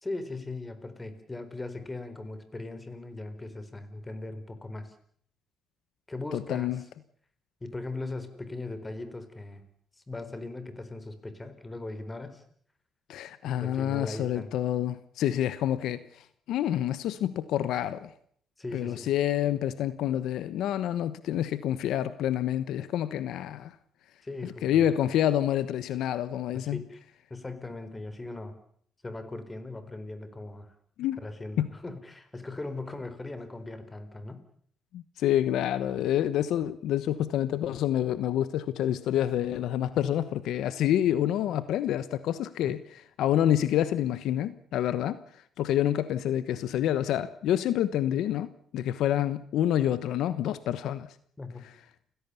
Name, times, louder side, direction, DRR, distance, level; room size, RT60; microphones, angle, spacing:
voice 1, 0.0-4.9 6.1-6.8 7.6-9.6 10.1-12.4 13.6-14.5 18.6-19.1 24.2-24.7 26.5-27.0 27.3-28.6 29.0-30.7 31.2-34.5 42.6-42.8 51.4-51.7, left 2 dB, 20° left, 4.3 m, -39 dB
voice 2, 6.3-6.8 13.1-16.0 16.5-18.1 18.7-23.7 24.6-26.8 31.0-31.2 31.6-31.7 34.9-45.2 45.6-51.1, left 11 dB, 85° left, 1.1 m, -28 dB
29.5 x 16.5 x 7.0 m
cardioid pair, 90°, 0 cm